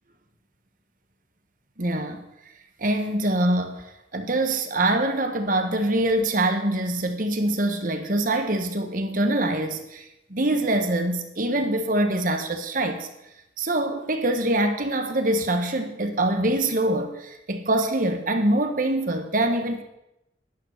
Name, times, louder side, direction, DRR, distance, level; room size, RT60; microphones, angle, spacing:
voice 1, 1.8-2.2 2.8-3.9 4.1-13.1 13.6-19.8, right 1 dB, 50° right, 6 dB, 1.3 m, -24 dB
11.5 x 9.8 x 6.5 m, 0.86 s
head